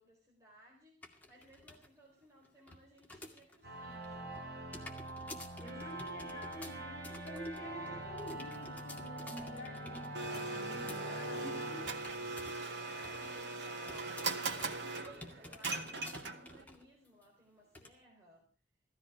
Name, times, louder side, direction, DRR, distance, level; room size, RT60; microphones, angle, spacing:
voice 1, 0.0-4.4 5.2-6.4 11.2-18.5, equal, 20° right, -3 dB, 4.1 m, -62 dB
sound 1, 1.0-1.9 2.2-3.6 3.9-12.7 12.9-13.4 13.9-16.9 17.2-17.3 17.7-17.9, left 1 dB, 10° left, 2.2 m, -52 dB
sound 2, 3.6-13.0, right 1 dB, 65° right, 3.7 m, -45 dB
voice 2, 5.6-11.8, left 1 dB, 55° left, 5 dB, 2.9 m, -48 dB
Domestic sounds home sounds, 10.1-16.6, right 3 dB, 80° right, 1.7 m, -40 dB
16.0 x 14.5 x 4.9 m, 0.37 s
head